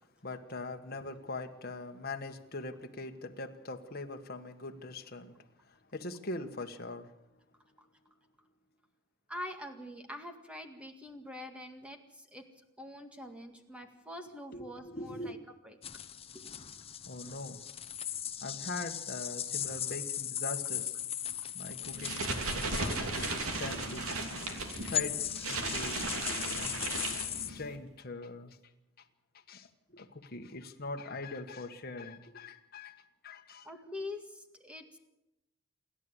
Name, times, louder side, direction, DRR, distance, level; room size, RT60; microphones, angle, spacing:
voice 1, 0.2-7.1 14.5-15.4 17.1-17.6 18.4-21.0 21.5-27.0 27.3-28.6 29.5-33.7, left 2 dB, 45° left, 5 dB, 1.4 m, -42 dB
voice 2, 9.3-12.4 12.8-15.4 15.6-15.8 16.3-16.6 24.7-24.8 26.4-26.5 33.6-35.0, left 1 dB, 5° right, 5 dB, 1.9 m, -45 dB
sound 1, 15.8-27.5, left 10 dB, 25° left, 0.9 m, -38 dB
sound 2, 21.8-27.8, right 3 dB, 80° right, 2.9 m, -36 dB
27.5 x 11.5 x 8.1 m, 0.91 s
head